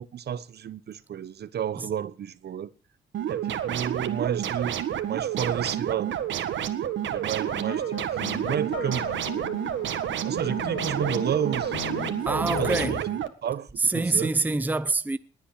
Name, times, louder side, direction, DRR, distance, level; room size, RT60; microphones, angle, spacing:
voice 1, 0.0-2.7 3.3-6.1 7.1-9.1 9.3-9.5 10.2-12.1 12.5-13.0 13.4-14.4, right 9 dB, 55° right, 1.1 m, -31 dB
sound 1, 3.1-13.3, right 10 dB, 70° right, 1.7 m, -29 dB
sound 2, 7.4-13.0, left 8 dB, 75° left, 3.2 m, -37 dB
voice 2, 12.2-13.0 13.8-15.2, right 3 dB, 10° right, 0.7 m, -25 dB
20.0 x 8.6 x 6.4 m
cardioid pair, 90°, 20 cm